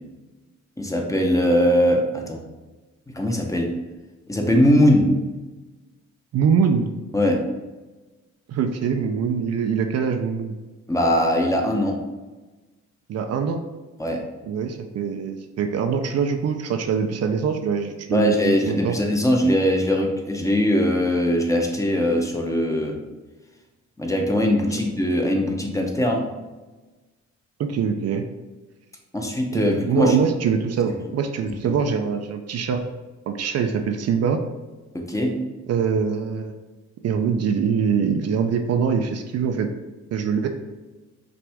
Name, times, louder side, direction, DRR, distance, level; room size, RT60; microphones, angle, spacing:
voice 1, 0.8-2.4 3.1-3.7 4.3-5.2 7.1-7.5 10.9-12.0 14.0-14.3 18.1-23.0 24.0-26.3 29.1-30.2 31.4-31.8 34.9-35.4, equal, 10° left, 1 dB, 0.8 m, -21 dB
voice 2, 6.3-6.9 8.5-10.5 13.1-13.6 14.5-19.0 27.6-28.2 29.5-32.8 33.3-34.4 35.7-36.5 37.0-39.7 40.1-40.5, right 6 dB, 55° right, 6 dB, 0.5 m, -23 dB
5.9 x 2.5 x 3.4 m, 1.2 s
cardioid pair, 90°, 30 cm